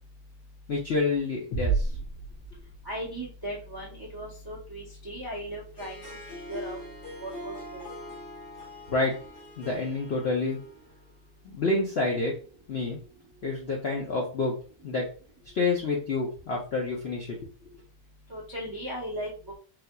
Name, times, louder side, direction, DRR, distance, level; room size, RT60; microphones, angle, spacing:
voice 1, 0.7-1.9 8.9-9.1 9.6-10.6 11.4-12.3 12.7-13.0 13.4-14.5 14.8-15.1 15.5-17.3, left 3 dB, 65° left, -2 dB, 0.6 m, -28 dB
sound 1, 1.5-3.2, right 4 dB, 90° left, 1.8 m, -30 dB
voice 2, 2.8-6.0 6.5-6.8 7.2-7.9 18.3-19.3, right 1 dB, 30° right, -4 dB, 0.4 m, -37 dB
Harp, 5.6-11.1, left 1 dB, 40° left, 0.9 m, -43 dB
4.0 x 2.7 x 2.2 m, 0.39 s
omnidirectional pair, 1.8 m